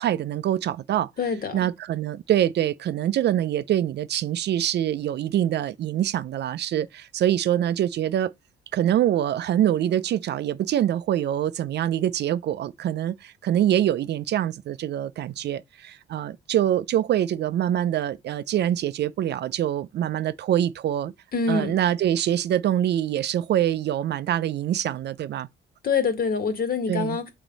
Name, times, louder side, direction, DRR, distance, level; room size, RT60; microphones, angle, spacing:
voice 1, 0.0-1.1 1.5-8.3 8.7-21.1 21.5-25.5 26.9-27.2, right 11 dB, 60° right, 0.4 m, -24 dB
voice 2, 1.2-1.6 21.3-21.8 25.8-27.3, left 5 dB, 50° left, 1.6 m, -25 dB
6.2 x 4.2 x 3.9 m
cardioid pair, 90°, 20 cm